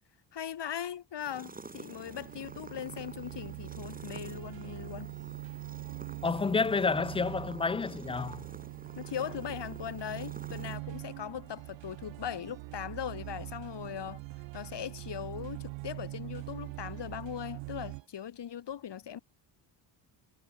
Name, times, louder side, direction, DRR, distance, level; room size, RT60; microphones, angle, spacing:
voice 1, 0.3-5.1 9.0-14.2 14.5-19.2, left 9 dB, 55° left, 3.7 m, -39 dB
sound 1, 1.2-10.8, right 3 dB, 15° right, 2.1 m, -50 dB
sound 2, 1.5-18.0, right 27 dB, 80° right, 0.8 m, -43 dB
sound 3, 4.4-18.1, right 9 dB, 60° right, 7.0 m, -59 dB
voice 2, 6.2-8.4, left 4 dB, 15° left, 0.3 m, -29 dB
hypercardioid pair, 55°, 49 cm